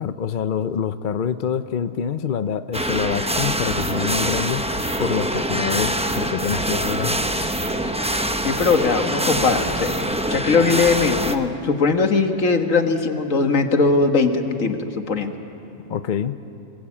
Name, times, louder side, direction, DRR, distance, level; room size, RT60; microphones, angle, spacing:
voice 1, 0.0-4.6 5.0-7.5 15.9-16.3, left 7 dB, 50° left, 11 dB, 0.7 m, -26 dB
sound 1, 2.7-11.4, right 1 dB, 5° right, 0.7 m, -24 dB
sound 2, 2.9-10.9, right 1 dB, 85° right, 4.6 m, -39 dB
voice 2, 8.1-9.9 10.3-15.3, left 4 dB, 65° left, 6 dB, 1.8 m, -20 dB
26.0 x 23.0 x 8.6 m, 3.0 s
omnidirectional pair, 1.4 m